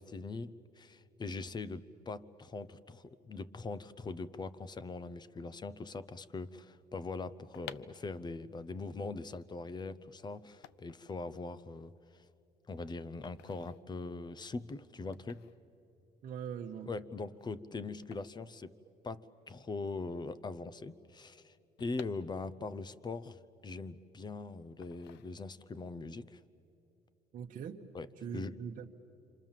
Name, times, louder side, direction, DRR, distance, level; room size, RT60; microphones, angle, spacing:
voice 1, 0.0-11.9 12.7-15.5 16.9-18.7 19.0-26.4 27.9-28.1 28.3-28.6, left 3 dB, 25° left, 16 dB, 0.7 m, -42 dB
sound 1, 7.5-19.4 19.7-19.8 19.9-22.8 23.2-24.3 24.8-25.8 26.2-26.4, left 11 dB, 85° left, 0.6 m, -56 dB
voice 2, 16.2-16.9 27.3-27.9 28.2-28.9, right 7 dB, 50° right, 0 dB, 1.1 m, -42 dB
27.5 x 26.5 x 7.4 m, 2.8 s
cardioid pair, 110°, 17 cm